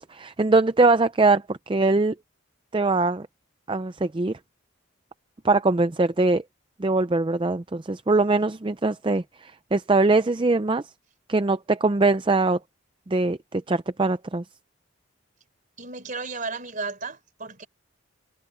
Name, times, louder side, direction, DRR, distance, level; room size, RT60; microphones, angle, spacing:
voice 1, 0.0-2.1 2.7-3.3 3.7-4.4 5.4-6.4 6.8-10.8 11.3-12.6 13.1-14.4, right 3 dB, 25° right, 0.5 m, -22 dB
voice 2, 15.8-17.7, right 4 dB, 40° right, 4.0 m, -34 dB
head